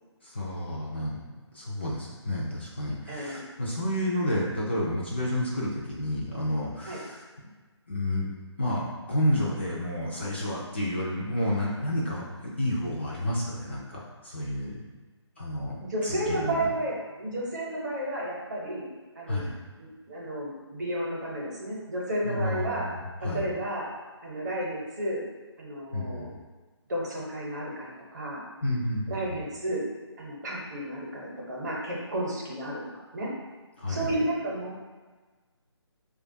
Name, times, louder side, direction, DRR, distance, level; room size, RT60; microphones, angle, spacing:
voice 1, 0.2-7.2 7.9-8.3 8.6-14.8 15.4-15.8 16.0-16.7 19.3-19.5 22.2-23.4 25.9-26.3 28.6-29.4 33.8-34.2, left 1 dB, 25° left, -5 dB, 0.4 m, -30 dB
voice 2, 3.1-3.4 6.9-7.0 15.8-18.9 19.2-19.5 19.8-22.9 23.2-23.9 24.2-25.2 25.6-26.3 26.9-28.4 29.1-29.8 30.2-32.8 33.1-33.3 33.9-34.8, right 1 dB, 40° right, -4 dB, 0.9 m, -32 dB
4.7 x 2.3 x 2.6 m, 1.3 s
figure-of-eight pair, 150°, 15 cm